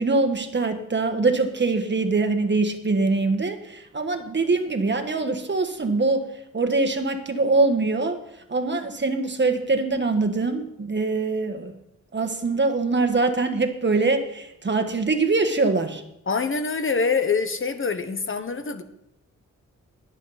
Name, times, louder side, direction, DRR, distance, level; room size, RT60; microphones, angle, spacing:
voice 1, 0.0-6.3 6.5-8.2 8.5-11.8 12.1-16.0, right 3 dB, 35° right, 7 dB, 1.5 m, -23 dB
voice 2, 16.3-18.8, left 5 dB, 40° left, 9 dB, 1.2 m, -25 dB
20.0 x 7.4 x 4.2 m, 0.80 s
cardioid pair, 80°, 30 cm